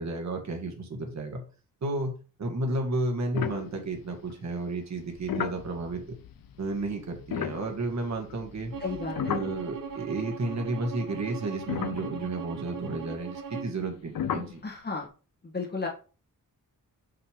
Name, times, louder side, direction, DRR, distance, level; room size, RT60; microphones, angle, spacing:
voice 1, 0.0-1.4 1.8-2.1 2.4-6.0 6.6-8.7 9.3-14.6, right 2 dB, 55° right, 3 dB, 1.7 m, -32 dB
sound 1, 3.3-4.3 5.0-10.2 10.5-10.6 11.2-11.3 11.7-12.7 14.1-14.6, left 9 dB, 80° left, 0.7 m, -35 dB
Bowed string instrument, 8.7-13.8, right 6 dB, 75° right, 1.0 m, -40 dB
voice 2, 8.8-9.4 14.6-15.1 15.4-15.9, left 4 dB, 30° left, -3 dB, 2.3 m, -33 dB
5.8 x 5.4 x 3.5 m, 0.36 s
wide cardioid pair, 155°, 34 cm